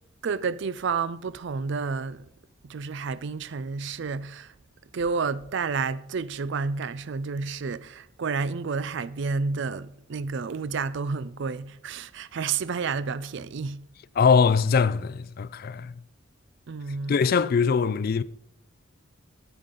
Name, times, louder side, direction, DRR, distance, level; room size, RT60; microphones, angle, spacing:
voice 1, 0.2-2.2 2.7-4.5 4.9-13.9 16.7-17.2, right 5 dB, 55° right, 0.4 m, -30 dB
voice 2, 14.2-15.9 17.1-18.2, left 5 dB, 45° left, 0.3 m, -22 dB
12.5 x 9.1 x 3.8 m
head